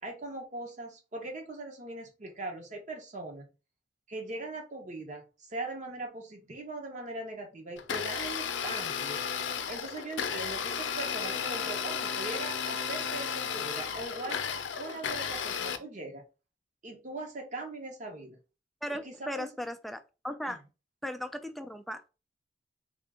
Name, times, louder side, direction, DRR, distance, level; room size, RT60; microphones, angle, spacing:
voice 1, 0.0-3.5 4.1-9.2 9.7-14.4 14.8-16.2 16.8-18.4 18.9-19.5 20.5-20.6, right 2 dB, 40° right, 0.9 m, -40 dB
Domestic sounds home sounds, 7.8-15.8, left 7 dB, 85° left, 0.5 m, -34 dB
voice 2, 18.8-20.6 21.0-22.1, equal, ahead, 0.3 m, -37 dB
3.5 x 2.5 x 3.6 m
head